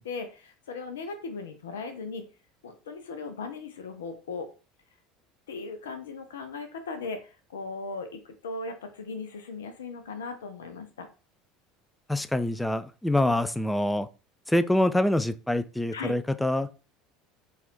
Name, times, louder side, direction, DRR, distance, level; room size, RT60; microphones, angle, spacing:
voice 1, 0.0-2.2 2.6-4.5 5.5-11.1 15.9-16.1, left 4 dB, 75° left, 0.6 m, -38 dB
voice 2, 12.1-14.1 14.5-16.7, left 1 dB, 5° left, 0.4 m, -25 dB
4.1 x 2.5 x 4.0 m
figure-of-eight pair, 70°, 0 cm